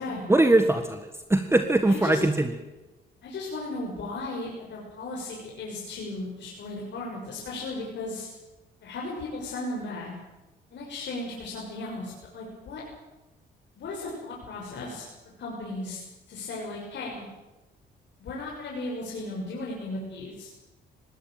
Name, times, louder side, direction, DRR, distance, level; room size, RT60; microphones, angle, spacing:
voice 1, 0.3-2.5, right 2 dB, 10° right, 8 dB, 1.6 m, -21 dB
voice 2, 1.9-2.2 3.2-8.3 8.8-10.1 10.7-12.8 13.8-15.1 15.4-16.0 16.3-17.2 18.2-20.5, left 2 dB, 65° left, -3 dB, 6.3 m, -36 dB
19.5 x 17.5 x 9.1 m, 1.1 s
cardioid pair, 90°, 20 cm